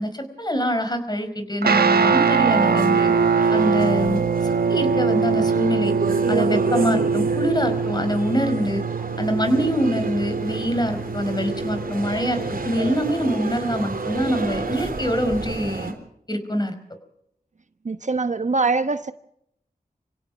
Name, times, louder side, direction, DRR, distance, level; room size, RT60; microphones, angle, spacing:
voice 1, 0.0-3.1 3.5-5.9 6.3-8.8 9.2-15.9 16.3-16.7, equal, 25° left, 4.8 m, -24 dB
Guitar, 1.6-13.1, right 5 dB, 85° right, 1.1 m, -22 dB
sound 1, 1.9-15.9, right 3 dB, 70° right, 3.6 m, -30 dB
voice 2, 17.8-19.1, right 3 dB, 50° right, 1.0 m, -23 dB
26.0 x 17.0 x 6.2 m
cardioid pair, 45°, 16 cm